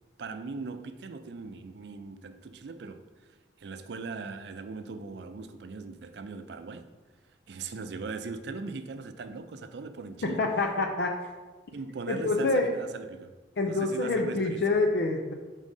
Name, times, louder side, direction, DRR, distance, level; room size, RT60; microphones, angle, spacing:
voice 1, 0.2-3.0 3.6-6.9 7.5-10.5 11.7-13.3 13.7-14.6, right 4 dB, 70° right, 0.4 m, -39 dB
voice 2, 10.2-11.3 12.1-12.7 13.6-15.3, left 3 dB, 70° left, 0.5 m, -27 dB
5.3 x 3.6 x 5.2 m
head